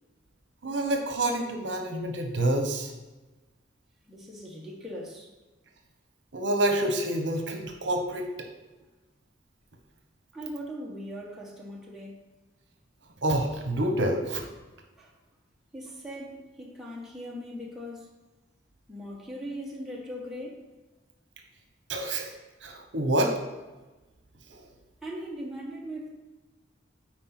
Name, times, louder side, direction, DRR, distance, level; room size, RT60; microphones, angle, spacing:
voice 1, 0.6-2.9 6.3-8.5 13.2-14.4 21.9-22.3 22.6-23.3 24.5-24.7, right 1 dB, 70° right, 4 dB, 1.0 m, -27 dB
voice 2, 4.1-5.3 10.3-12.3 15.0-15.1 15.7-18.1 18.9-20.7 25.0-26.1, equal, ahead, -4 dB, 1.2 m, -39 dB
9.5 x 4.4 x 4.4 m, 1.1 s
head